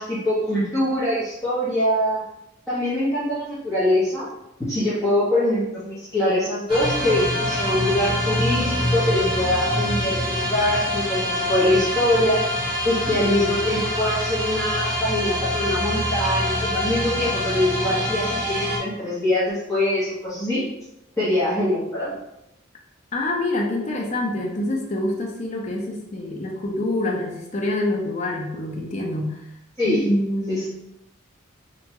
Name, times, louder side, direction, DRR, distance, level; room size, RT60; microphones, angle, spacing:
voice 1, 0.0-2.2 2.7-4.3 4.7-12.4 12.8-20.7 21.2-22.2 29.8-30.0 30.5-30.6, left 1 dB, 15° left, -13 dB, 0.9 m, -23 dB
sound 1, 6.7-18.8, equal, 25° right, 0.8 m, -25 dB
voice 2, 23.1-29.4 29.8-30.7, left 1 dB, 35° left, 0 dB, 0.5 m, -26 dB
2.8 x 2.2 x 2.8 m, 0.86 s
head